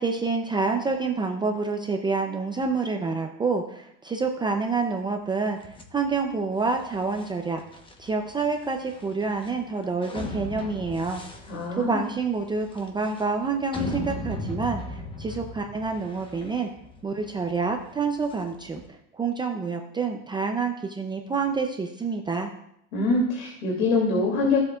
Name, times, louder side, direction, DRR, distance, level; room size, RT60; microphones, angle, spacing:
voice 1, 0.0-7.6 8.0-11.2 11.8-16.7 17.0-22.5, right 4 dB, 10° right, 3 dB, 0.4 m, -28 dB
sound 1, 5.6-18.9, left 1 dB, 10° left, 0.9 m, -39 dB
voice 2, 11.5-12.0 22.9-24.6, left 3 dB, 85° left, -2 dB, 2.5 m, -24 dB
14.5 x 7.9 x 2.3 m, 0.75 s
supercardioid pair, 145°, 41 cm